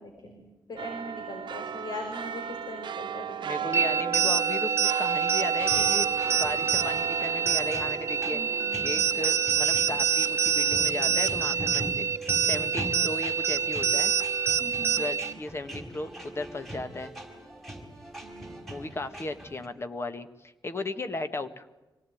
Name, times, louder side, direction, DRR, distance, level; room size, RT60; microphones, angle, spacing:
voice 1, 0.0-4.4 8.3-9.1 9.7-10.1 14.6-15.4 18.2-18.6, left 1 dB, 60° left, 3 dB, 5.0 m, -42 dB
sound 1, 0.8-11.5 12.0-12.1, right 8 dB, 85° right, 0.9 m, -35 dB
voice 2, 3.4-8.4 8.8-12.1 12.4-14.1 15.0-17.1 18.7-21.7, left 2 dB, 35° left, 9 dB, 1.7 m, -36 dB
sound 2, 3.7-15.3, right 7 dB, 35° right, 1.1 m, -26 dB
sound 3, 5.6-19.7, right 1 dB, ahead, 4.9 m, -42 dB
26.0 x 18.0 x 9.4 m, 1.1 s
wide cardioid pair, 130°, 8 cm